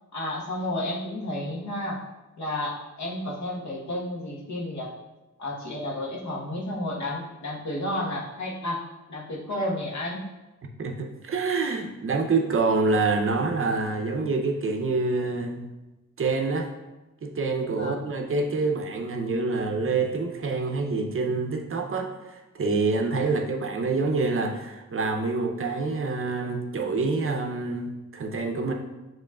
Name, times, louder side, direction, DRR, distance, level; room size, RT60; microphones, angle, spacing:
voice 1, 0.1-2.0 2.4-4.9 5.4-10.3 17.7-18.0 23.2-23.3, left 1 dB, 70° left, -3 dB, 1.2 m, -32 dB
voice 2, 10.8-15.7 16.2-16.7 17.2-28.7, right 3 dB, 45° right, 3 dB, 0.6 m, -26 dB
7.3 x 3.0 x 2.3 m, 1.1 s
wide cardioid pair, 100°, 29 cm